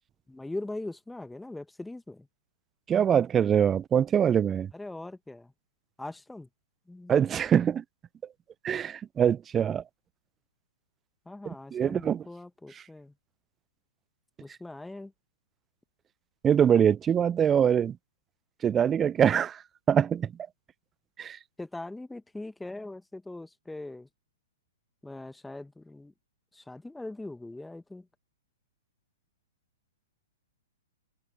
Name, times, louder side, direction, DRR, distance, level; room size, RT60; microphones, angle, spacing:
voice 1, 0.3-2.3 4.7-5.5 6.0-6.5 6.9-7.2 11.2-13.1 14.4-15.1 21.6-24.1 25.0-26.1 26.5-28.1, left 2 dB, 5° left, 1.2 m, -41 dB
voice 2, 2.9-4.7 7.1-7.8 8.6-9.8 11.5-12.2 16.4-18.0 18.6-19.6 19.9-20.3 21.2-21.4, right 8 dB, 20° right, 0.3 m, -24 dB
figure-of-eight pair, 115°, 0 cm